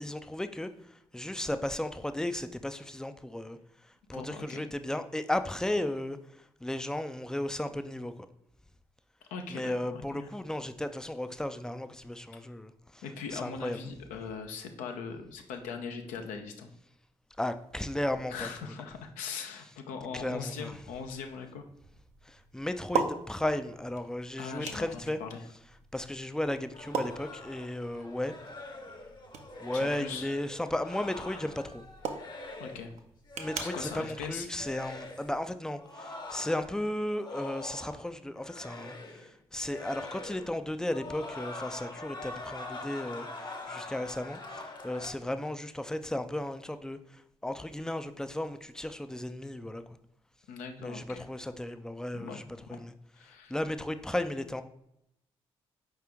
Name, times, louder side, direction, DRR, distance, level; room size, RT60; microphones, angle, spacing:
voice 1, 0.0-3.6 4.1-6.2 6.6-8.1 9.5-13.0 13.3-13.8 17.4-18.5 20.1-20.7 22.3-25.2 25.9-28.3 29.6-31.8 33.4-49.8 50.8-52.4 52.7-52.9 53.5-54.6, left 1 dB, 5° left, 10 dB, 0.4 m, -35 dB
voice 2, 4.1-4.6 9.3-10.3 13.0-16.7 18.3-21.6 24.4-25.4 29.7-30.3 32.6-32.9 33.6-34.5 50.5-51.3 52.1-52.4 52.7-52.8 53.1-53.5, left 5 dB, 70° left, 5 dB, 0.5 m, -40 dB
sound 1, 20.2-35.4, right 6 dB, 55° right, 0.6 m, -42 dB
sound 2, 26.7-32.9 33.3-34.2 34.5-35.3 35.8-38.1 38.4-39.3 39.6-40.6 40.9-45.1, left 2 dB, 35° left, 0.8 m, -44 dB
4.8 x 3.0 x 3.5 m, 0.79 s
hypercardioid pair, 40°, 14 cm